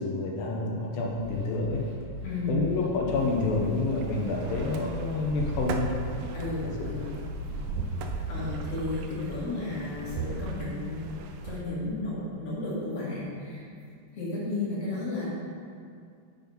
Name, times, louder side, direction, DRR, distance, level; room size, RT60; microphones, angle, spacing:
voice 1, 0.0-1.9 2.5-5.9 6.6-6.9, left 3 dB, 80° left, -1 dB, 2.4 m, -28 dB
sound 1, 1.1-8.6, left 3 dB, 65° right, 1.7 m, -40 dB
voice 2, 2.2-2.6 6.3-7.1 8.3-11.0 11.4-13.7 14.1-15.3, left 2 dB, 50° left, -7 dB, 2.4 m, -33 dB
sound 2, 3.1-11.6, right 4 dB, 90° right, 1.7 m, -37 dB
6.9 x 6.0 x 5.3 m, 2.3 s
omnidirectional pair, 4.2 m